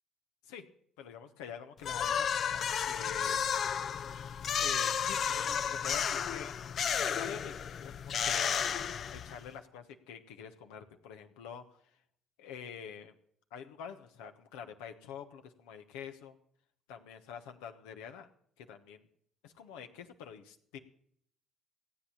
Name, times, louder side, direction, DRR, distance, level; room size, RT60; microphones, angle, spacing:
voice 1, 1.0-3.4 4.6-6.5 7.0-8.7 9.1-11.8 12.4-13.1 13.5-16.4 16.9-18.3 18.6-19.1 19.4-20.8, left 7 dB, 80° left, 7 dB, 1.2 m, -46 dB
sound 1, 1.8-9.5, left 8 dB, 55° left, 0.6 m, -32 dB
16.0 x 8.5 x 7.3 m, 0.66 s
hypercardioid pair, 60°, 0 cm